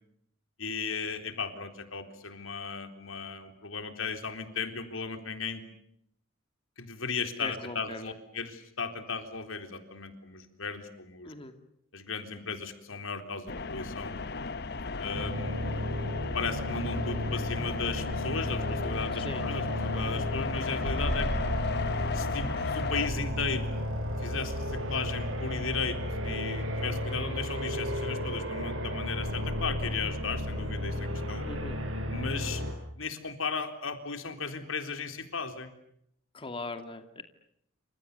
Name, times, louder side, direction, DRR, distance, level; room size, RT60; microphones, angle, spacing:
voice 1, 0.6-5.6 6.8-11.3 11.9-14.2 15.0-15.7 16.3-21.3 22.1-23.7 24.2-31.5 32.1-32.6 33.0-35.7, left 5 dB, 85° left, 7 dB, 3.9 m, -36 dB
voice 2, 7.4-8.1 11.2-11.5 19.2-19.4 31.4-31.8 36.3-37.2, left 2 dB, 30° left, 7 dB, 2.4 m, -39 dB
sound 1, 13.5-23.1, left 4 dB, 55° left, 1.3 m, -35 dB
sound 2, 15.1-32.7, left 1 dB, 85° right, 5.6 m, -33 dB
29.0 x 26.5 x 6.8 m, 0.74 s
head